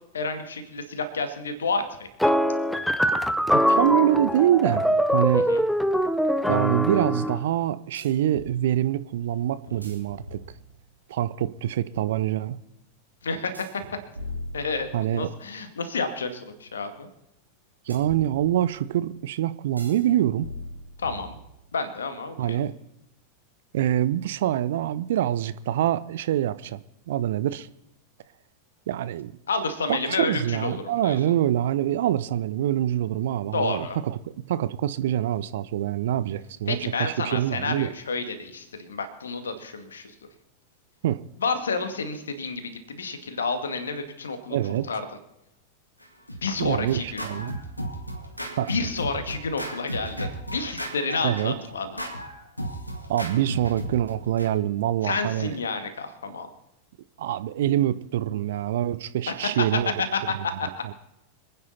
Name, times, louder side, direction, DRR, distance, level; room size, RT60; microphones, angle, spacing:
voice 1, 0.1-2.3 5.5-5.6 13.2-13.5 14.5-17.1 21.0-21.4 21.7-22.6 29.5-31.2 33.5-34.0 36.7-40.1 41.4-44.6 44.9-45.0 46.4-47.2 48.7-52.0 55.0-56.5 59.3-59.7 60.1-60.3 60.6-60.7, left 4 dB, 70° left, 2.0 m, -30 dB
sound 1, 2.2-7.4, equal, ahead, 0.8 m, -23 dB
voice 2, 3.5-5.5 6.5-10.4 11.1-12.6 14.9-15.3 17.9-20.5 22.4-22.7 23.7-26.8 27.1-27.7 28.9-29.4 29.9-34.2 34.5-37.9 41.0-41.2 44.5-44.9 46.6-47.6 48.6-48.7 51.2-51.5 53.1-55.6 57.2-59.9 60.8-60.9, right 12 dB, 55° right, 0.7 m, -25 dB
sound 2, 7.9-8.6 9.6-10.9 13.5-15.2 17.9-18.9 19.8-20.1 20.4-21.8, left 1 dB, 85° right, 2.7 m, -41 dB
Scratching (performance technique), 46.0-54.5, right 1 dB, 85° left, 2.1 m, -35 dB
26.5 x 9.6 x 4.2 m
figure-of-eight pair, 90°, 0 cm